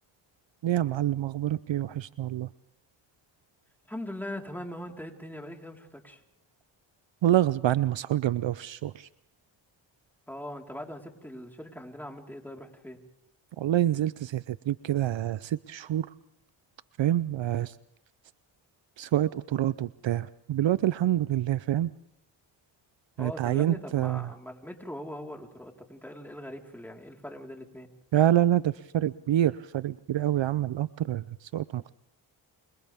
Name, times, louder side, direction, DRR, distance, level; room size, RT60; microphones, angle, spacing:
voice 1, 0.6-2.5 7.2-9.1 13.6-16.1 17.0-17.7 19.0-21.9 23.2-24.3 28.1-31.9, right 12 dB, 60° right, 17 dB, 0.7 m, -27 dB
voice 2, 3.9-6.2 10.3-13.0 23.2-27.9, left 1 dB, 5° left, 1 dB, 4.4 m, -41 dB
29.5 x 26.0 x 3.6 m, 0.82 s
cardioid pair, 55°, 50 cm